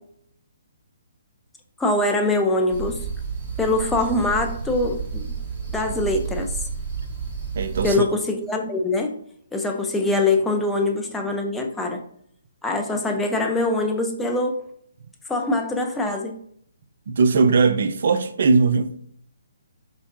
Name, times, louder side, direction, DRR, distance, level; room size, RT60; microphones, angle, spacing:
voice 1, 1.8-3.0 3.6-5.2 5.7-6.5 7.8-9.2 9.5-12.0 12.6-14.7 15.3-16.3, left 2 dB, 5° left, 0.4 m, -23 dB
sound 1, 2.7-7.9, right 5 dB, 25° right, 1.3 m, -31 dB
voice 2, 7.6-7.9 17.1-18.9, right 4 dB, 60° right, 0.4 m, -19 dB
4.4 x 2.7 x 2.5 m
hypercardioid pair, 145°, 0 cm